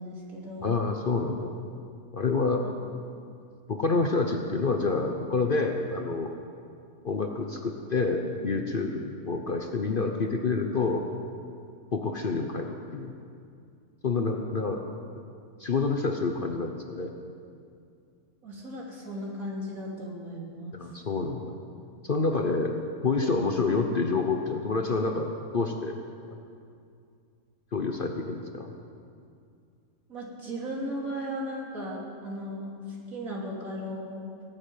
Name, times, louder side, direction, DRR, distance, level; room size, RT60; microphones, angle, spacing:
voice 1, 0.0-0.8 2.6-2.7 18.4-20.9 30.1-34.3, equal, 65° right, -3 dB, 3.4 m, -36 dB
voice 2, 0.6-1.5 2.1-2.6 3.7-6.3 7.0-11.0 11.9-13.1 14.0-14.8 15.6-17.1 20.7-21.6 22.0-22.8 23.0-26.0 27.7-28.7, left 3 dB, 40° left, 3 dB, 0.9 m, -28 dB
18.5 x 7.8 x 9.2 m, 2.4 s
omnidirectional pair, 1.6 m